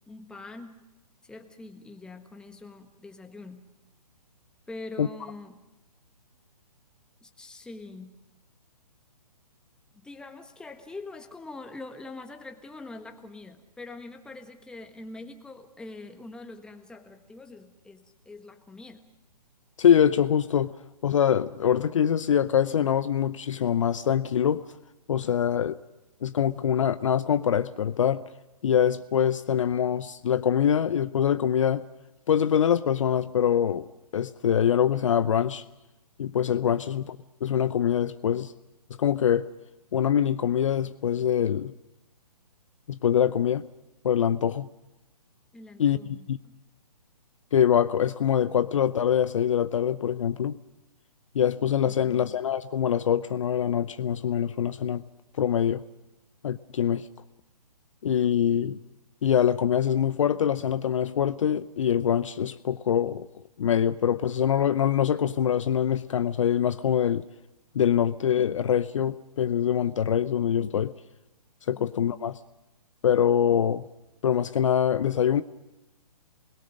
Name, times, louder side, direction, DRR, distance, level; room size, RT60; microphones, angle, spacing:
voice 1, 0.1-0.8 1.2-3.7 4.7-5.6 7.2-8.1 10.0-19.0 45.5-46.6, left 2 dB, 5° left, 5 dB, 1.5 m, -44 dB
voice 2, 19.8-20.7 21.0-24.7 25.1-25.8 26.2-28.2 28.6-31.8 32.3-33.9 34.1-35.6 36.2-38.5 39.0-39.5 39.9-41.7 42.9-43.7 44.0-44.7 45.8-46.0 46.3-46.4 47.5-50.6 51.3-55.0 55.4-55.8 56.4-57.1 58.0-58.8 59.2-63.3 63.6-67.2 67.7-70.9 71.7-72.4 73.0-73.8 74.2-75.4, left 9 dB, 50° left, 13 dB, 0.7 m, -24 dB
28.0 x 21.0 x 6.5 m, 0.99 s
figure-of-eight pair, 135°, 20 cm